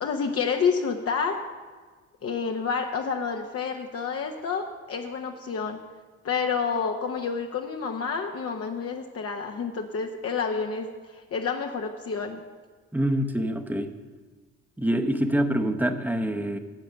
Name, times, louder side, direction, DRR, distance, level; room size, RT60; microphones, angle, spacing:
voice 1, 0.0-1.4 2.2-5.8 6.2-10.9 11.1-12.4, left 5 dB, 50° left, 3 dB, 0.9 m, -29 dB
voice 2, 12.9-13.9 14.8-16.6, right 1 dB, 5° right, 6 dB, 0.8 m, -25 dB
10.5 x 7.7 x 6.8 m, 1.4 s
cardioid pair, 90°, 30 cm